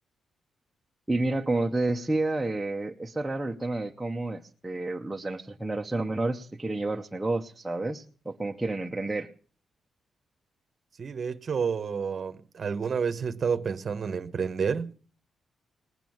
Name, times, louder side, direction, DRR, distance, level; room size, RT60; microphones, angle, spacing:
voice 1, 1.1-9.3, right 2 dB, 5° right, 0.7 m, -30 dB
voice 2, 11.0-14.9, right 6 dB, 40° right, 0.9 m, -29 dB
19.5 x 9.0 x 7.8 m
wide cardioid pair, 180°, 0 cm